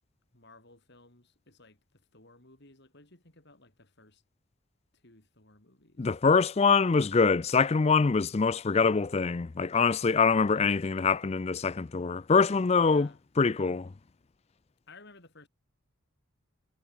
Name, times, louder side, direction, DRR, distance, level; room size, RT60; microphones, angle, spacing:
voice 1, 0.3-4.2 4.9-6.1 10.5-10.9 12.8-13.2 14.9-15.5, left 3 dB, 50° left, 3.7 m, -57 dB
voice 2, 6.0-13.1 13.4-13.9, left 5 dB, 30° left, 0.4 m, -24 dB
head